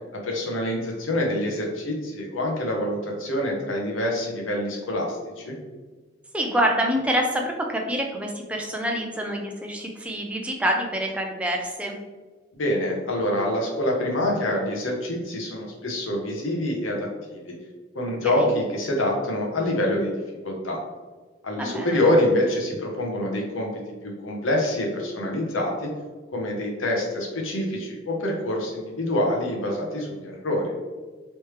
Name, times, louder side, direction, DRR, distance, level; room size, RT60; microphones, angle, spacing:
voice 1, 0.1-5.5 12.5-17.5 17.9-20.8 21.4-23.7 24.0-25.9 26.3-30.7, left 1 dB, 80° left, -1 dB, 0.9 m, -26 dB
voice 2, 6.3-12.0 18.2-18.5 21.6-22.0, equal, 5° right, 1 dB, 0.4 m, -26 dB
3.2 x 3.1 x 3.1 m, 1.3 s
head